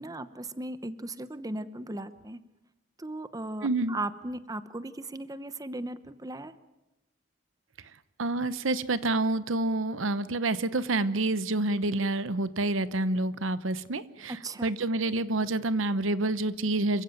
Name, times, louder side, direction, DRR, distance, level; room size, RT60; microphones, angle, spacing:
voice 1, 0.0-2.4 3.0-6.5 14.4-14.7, right 2 dB, 20° right, 12 dB, 0.9 m, -37 dB
voice 2, 3.6-4.0 8.2-17.0, right 2 dB, 80° right, 14 dB, 0.9 m, -28 dB
27.5 x 16.0 x 9.1 m, 1.0 s
head